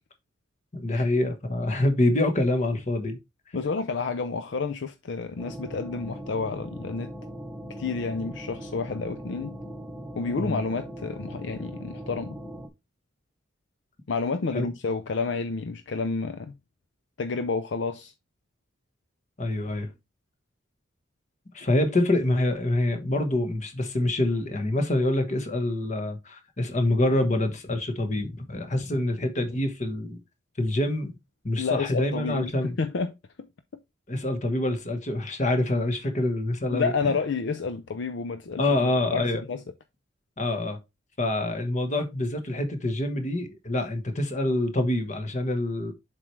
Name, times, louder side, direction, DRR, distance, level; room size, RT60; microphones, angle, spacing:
voice 1, 0.7-3.2 10.4-10.6 14.5-14.7 19.4-19.9 21.5-30.2 30.6-31.1 31.4-32.8 34.1-36.9 38.6-39.4 40.4-40.8 41.2-45.9, left 1 dB, 35° left, 1.2 m, -26 dB
voice 2, 3.5-7.1 7.8-9.6 10.2-12.4 14.1-16.6 17.2-18.1 31.6-33.1 36.7-39.6, left 4 dB, 60° left, 0.5 m, -30 dB
sound 1, 5.4-12.7, equal, ahead, 1.0 m, -40 dB
7.4 x 4.6 x 3.1 m
head